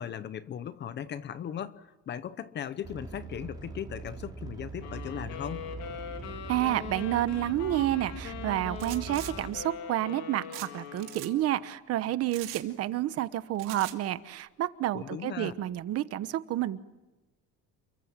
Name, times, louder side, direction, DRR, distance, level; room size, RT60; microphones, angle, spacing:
voice 1, 0.0-5.7 14.9-15.5, left 9 dB, 35° left, 15 dB, 0.9 m, -38 dB
sound 1, 2.8-9.7, right 4 dB, 15° right, 4.6 m, -42 dB
sound 2, 4.8-11.6, left 8 dB, 60° left, 3.6 m, -42 dB
voice 2, 6.5-16.8, right 13 dB, 50° right, 13 dB, 1.1 m, -30 dB
sound 3, 8.8-9.3 10.5-10.7 11.0-11.3 12.3-12.7 13.6-14.0, right 16 dB, 85° right, 2.7 m, -41 dB
29.5 x 23.0 x 7.5 m, 1.1 s
cardioid pair, 165°, 31 cm